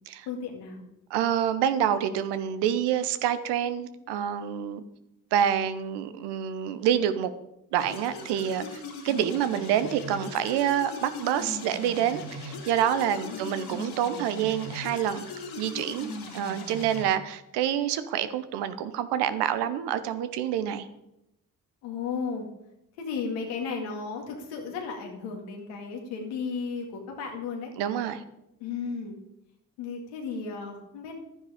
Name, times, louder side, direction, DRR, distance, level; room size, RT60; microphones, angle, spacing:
voice 1, 0.3-0.8 13.3-13.5 21.8-22.5 23.0-27.7 28.6-29.2 29.8-31.1, left 5 dB, 90° left, 1 dB, 2.2 m, -34 dB
voice 2, 1.1-4.8 5.3-7.3 7.7-15.2 15.6-20.9 27.8-28.2, right 10 dB, 85° right, 12 dB, 0.9 m, -27 dB
sound 1, 7.8-17.0, left 2 dB, 70° left, 3.2 m, -39 dB
12.0 x 9.8 x 5.0 m, 0.84 s
hypercardioid pair, 40°, 40 cm